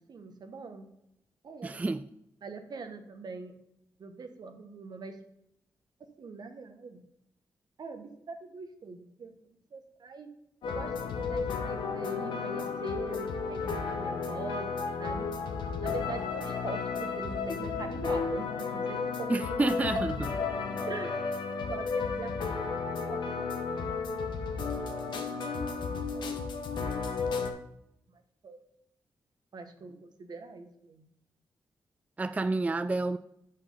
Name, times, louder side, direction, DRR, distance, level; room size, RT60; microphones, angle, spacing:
voice 1, 0.1-0.9 1.4-1.9 2.4-3.5 4.0-5.2 6.2-7.0 7.8-10.3 10.6-15.3 15.8-19.6 19.9-20.0 20.9-21.2 21.7-24.1 26.0-26.5 28.4-28.6 29.5-31.0, right 4 dB, 60° right, 1.1 m, -43 dB
voice 2, 1.6-2.0 19.3-20.2 32.2-33.2, right 3 dB, 20° right, 0.3 m, -29 dB
sound 1, 10.6-27.5, left 5 dB, 80° left, 1.0 m, -33 dB
6.1 x 5.3 x 5.5 m
cardioid pair, 60°, 8 cm